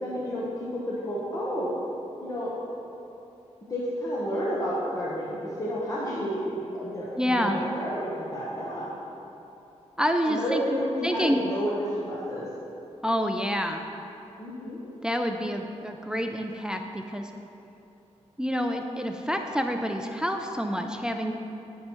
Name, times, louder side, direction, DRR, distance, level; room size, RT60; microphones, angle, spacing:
voice 1, 0.0-1.7 2.2-2.5 3.7-8.9 10.3-12.5 14.4-14.8, equal, 30° left, -6 dB, 1.0 m, -31 dB
voice 2, 7.2-7.6 10.0-11.4 13.0-13.8 15.0-17.3 18.4-21.3, equal, 5° right, 4 dB, 0.3 m, -28 dB
10.5 x 5.5 x 3.0 m, 2.9 s
wide cardioid pair, 120°, 12 cm